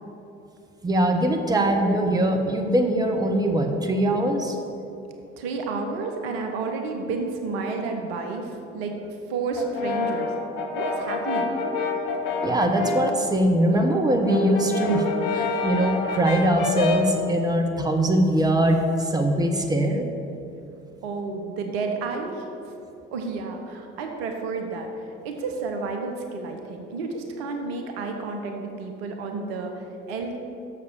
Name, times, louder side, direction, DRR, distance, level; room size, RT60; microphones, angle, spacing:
voice 1, 0.8-4.6 12.4-20.1, right 1 dB, 10° right, 3 dB, 1.0 m, -22 dB
voice 2, 5.4-9.0 9.3-10.3 10.7-11.6 21.0-22.5 23.1-30.4, right 4 dB, 70° right, 3 dB, 0.9 m, -31 dB
Brass instrument, 9.6-13.2 13.6-17.2, left 4 dB, 70° left, 0.9 m, -28 dB
6.9 x 6.6 x 6.7 m, 2.7 s
figure-of-eight pair, 50°, 32 cm